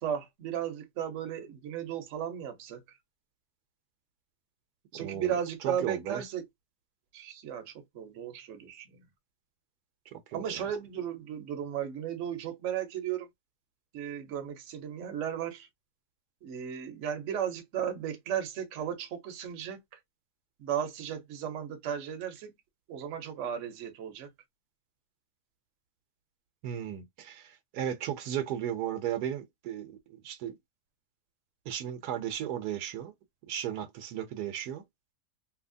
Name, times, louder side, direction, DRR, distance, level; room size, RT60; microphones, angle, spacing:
voice 1, 0.0-3.0 4.9-6.4 7.1-9.0 10.3-13.3 13.9-15.7 16.4-20.0 20.6-22.5 22.9-24.3, right 9 dB, 60° right, 0.9 m, -35 dB
voice 2, 4.9-5.3 5.6-6.2 10.1-10.6 26.6-30.5 31.7-33.1 33.5-34.8, right 10 dB, 75° right, 1.1 m, -35 dB
2.8 x 2.7 x 2.5 m
omnidirectional pair, 1.7 m